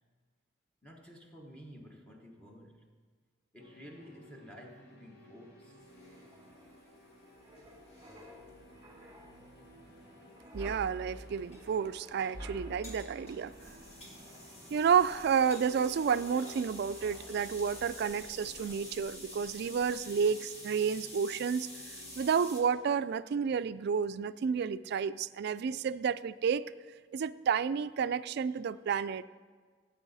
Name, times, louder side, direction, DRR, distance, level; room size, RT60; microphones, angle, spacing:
voice 1, 0.8-2.9 3.5-5.8, equal, 5° left, 1 dB, 1.2 m, -52 dB
sound 1, 3.6-22.8, left 1 dB, 60° left, 1.6 m, -57 dB
sound 2, 5.8-22.6, left 1 dB, 35° left, 2.4 m, -50 dB
Wind, 5.9-18.3 18.6-18.8, equal, 15° right, 1.7 m, -51 dB
voice 2, 10.5-13.5 14.7-21.7 22.2-26.7 27.1-29.2, right 6 dB, 60° right, 16 dB, 0.3 m, -30 dB
14.5 x 7.8 x 4.1 m, 1.5 s
head